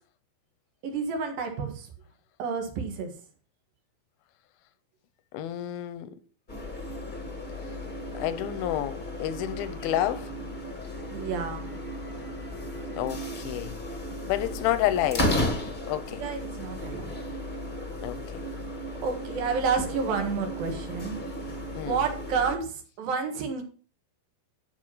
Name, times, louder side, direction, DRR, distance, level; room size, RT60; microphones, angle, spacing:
voice 1, 0.8-1.9 2.4-3.1 11.1-11.7 16.1-17.1 19.0-21.2 21.8-23.6, right 5 dB, 75° right, 3.5 m, -30 dB
voice 2, 5.3-6.1 8.1-10.3 12.9-13.8 14.2-15.4 15.9-16.2 18.0-18.4 21.8-22.0, left 12 dB, 85° left, 2.7 m, -29 dB
sound 1, 6.5-22.6, left 1 dB, 30° left, 0.9 m, -34 dB
12.0 x 5.1 x 5.6 m
omnidirectional pair, 4.2 m